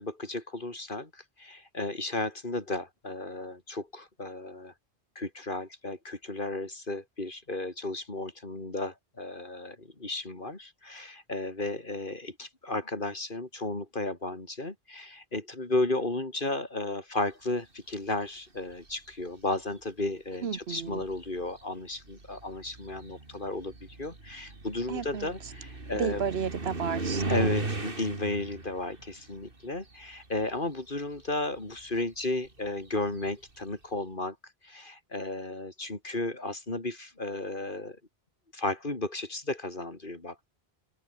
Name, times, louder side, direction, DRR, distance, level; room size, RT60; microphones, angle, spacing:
voice 1, 0.0-4.7 5.2-26.2 27.3-34.4 34.6-38.0 38.5-40.5, left 2 dB, 55° left, 3.7 m, -34 dB
sound 1, 18.6-19.1 20.1-20.2 20.8-30.7 31.0-33.6, right 3 dB, 60° right, 3.1 m, -38 dB
voice 2, 20.4-21.0 24.9-25.3 25.9-27.6, right 7 dB, 75° right, 1.3 m, -32 dB
omnidirectional pair, 1.0 m